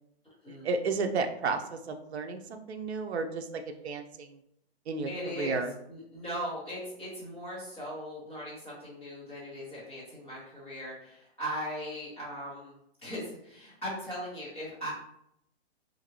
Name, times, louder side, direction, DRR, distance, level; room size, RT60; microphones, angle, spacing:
voice 1, 0.5-4.4 4.9-5.7, right 4 dB, 80° right, 6 dB, 0.6 m, -33 dB
voice 2, 5.0-5.6 5.9-12.7 13.0-14.9, equal, 5° left, -14 dB, 0.7 m, -39 dB
2.8 x 2.5 x 2.9 m, 0.76 s
hypercardioid pair, 175°, 32 cm